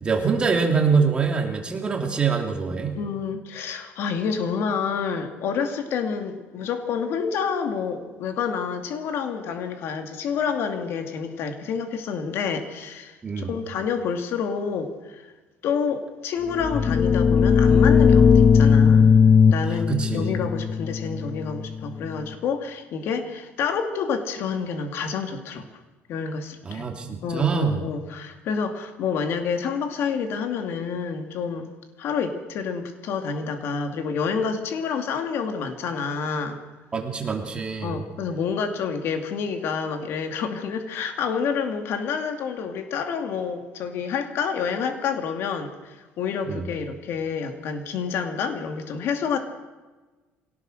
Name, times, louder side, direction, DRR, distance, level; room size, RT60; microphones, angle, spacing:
voice 1, 0.0-3.0 13.2-13.5 19.6-20.4 26.6-27.8 36.9-38.0 46.4-46.7, right 5 dB, 20° right, 2 dB, 2.7 m, -24 dB
voice 2, 2.9-15.3 15.6-19.2 19.5-25.7 26.1-26.9 27.2-31.7 32.0-36.6 37.8-49.4, left 6 dB, 60° left, 6 dB, 2.4 m, -28 dB
sound 1, 16.5-22.1, left 6 dB, 30° left, 0.6 m, -18 dB
24.5 x 18.0 x 6.6 m, 1.2 s
cardioid pair, 160°, 5 cm